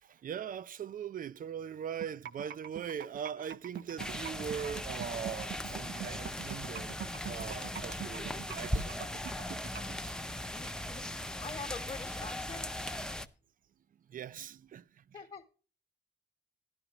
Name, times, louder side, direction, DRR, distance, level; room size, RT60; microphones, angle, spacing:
voice 1, 0.0-7.0 7.3-9.0 10.0-10.1 14.1-15.2, right 8 dB, 50° right, 0.4 m, -41 dB
sound 1, 2.0-9.9, right 10 dB, 65° right, 0.8 m, -42 dB
sound 2, 4.0-13.3, left 1 dB, 5° left, 0.5 m, -38 dB
voice 2, 10.5-11.1 11.4-12.7 15.1-15.4, left 4 dB, 30° left, 1.1 m, -44 dB
13.0 x 11.5 x 2.9 m
wide cardioid pair, 170°, 19 cm